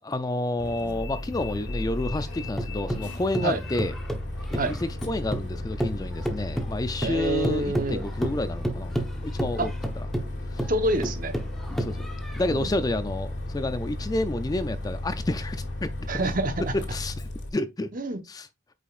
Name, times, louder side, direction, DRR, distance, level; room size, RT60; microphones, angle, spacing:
voice 1, 0.0-3.9 4.5-9.0 9.2-9.7 10.0-10.1 10.5-10.7 11.7-12.1 12.4-15.9 16.9-17.9 18.2-18.5, left 2 dB, 20° left, 0.4 m, -30 dB
Bus, 0.6-17.5, left 1 dB, 60° left, 1.6 m, -34 dB
sound 1, 2.1-5.5 5.8-12.5, right 1 dB, ahead, 1.0 m, -32 dB
voice 2, 7.0-8.0 9.6-9.7 10.7-11.3 12.5-12.7 16.1-16.5 17.9-18.2, right 2 dB, 45° right, 1.0 m, -27 dB
8.5 x 5.1 x 2.5 m
head